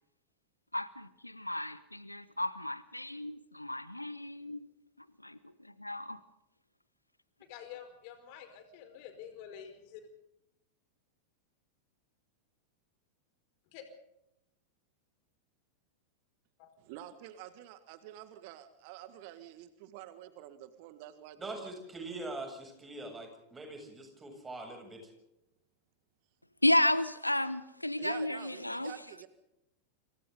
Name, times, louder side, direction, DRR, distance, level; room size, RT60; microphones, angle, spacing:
voice 1, 0.7-4.7 5.2-5.4 5.8-6.2 26.6-28.9, left 1 dB, 85° left, 17 dB, 1.0 m, -32 dB
voice 2, 7.5-10.1 13.7-13.8 16.6-16.7, left 9 dB, 45° left, 8 dB, 4.8 m, -48 dB
voice 3, 16.8-21.7 28.0-29.3, right 12 dB, 45° right, 11 dB, 1.7 m, -48 dB
voice 4, 21.4-25.1, right 2 dB, 15° right, 4 dB, 7.6 m, -43 dB
28.5 x 26.5 x 4.0 m, 0.84 s
figure-of-eight pair, 90°, 0 cm